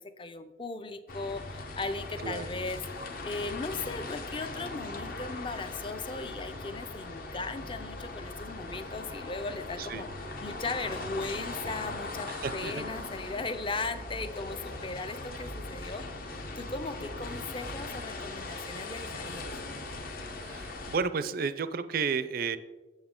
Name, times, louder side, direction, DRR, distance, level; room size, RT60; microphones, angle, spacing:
voice 1, 0.0-19.5, left 3 dB, 25° left, 10 dB, 0.5 m, -38 dB
sound 1, 1.1-21.0, left 2 dB, 50° left, 0.8 m, -40 dB
voice 2, 12.3-12.9 20.4-22.6, right 5 dB, 50° right, 13 dB, 0.4 m, -32 dB
8.1 x 7.0 x 3.6 m, 1.2 s
head